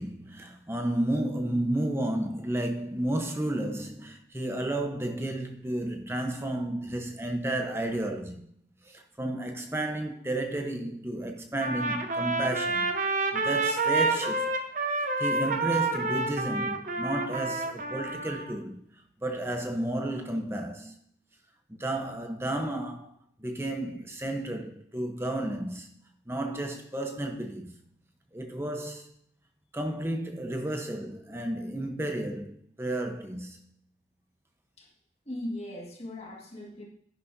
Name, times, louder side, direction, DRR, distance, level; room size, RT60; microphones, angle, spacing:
voice 1, 0.0-8.4 8.8-14.5 15.2-18.8 19.2-20.9 21.7-23.1 23.4-25.9 26.3-27.8 28.3-29.1 29.7-33.6, right 1 dB, 15° right, 1.0 m, -32 dB
Trumpet, 11.6-18.5, right 3 dB, 45° right, 1.0 m, -28 dB
voice 2, 35.3-36.8, left 1 dB, 35° left, 2.0 m, -38 dB
10.5 x 10.5 x 2.8 m
head